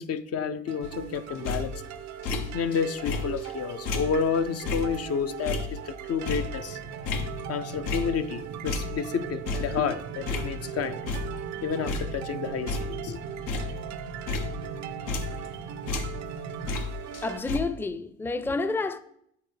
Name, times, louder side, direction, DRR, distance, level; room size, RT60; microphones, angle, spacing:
voice 1, 0.0-1.7 2.5-6.8 7.5-11.0 11.6-13.2, left 6 dB, 55° left, 0.5 m, -30 dB
sound 1, 0.7-17.4, right 12 dB, 65° right, 0.5 m, -40 dB
sound 2, 0.8-2.8 3.1-8.4 8.7-10.8 11.1-11.6 11.9-15.6 15.9-17.6, left 4 dB, 85° left, 0.7 m, -33 dB
sound 3, 6.7-16.7, right 3 dB, 80° right, 0.9 m, -42 dB
voice 2, 17.2-19.0, left 3 dB, 5° left, 0.5 m, -29 dB
8.2 x 4.1 x 3.2 m
supercardioid pair, 55°, 30 cm